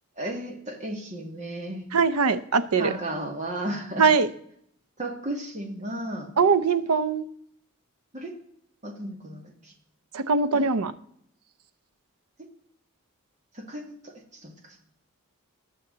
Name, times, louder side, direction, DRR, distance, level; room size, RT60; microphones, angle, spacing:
voice 1, 0.2-1.9 2.8-4.1 5.0-6.3 8.1-8.3 8.8-9.7 10.5-10.7 13.5-14.1 14.4-14.5, right 1 dB, 30° right, 2 dB, 2.0 m, -34 dB
voice 2, 1.9-2.9 4.0-4.3 6.4-7.2 10.1-10.9, right 5 dB, 85° right, 13 dB, 0.7 m, -21 dB
19.5 x 6.7 x 3.9 m, 0.69 s
head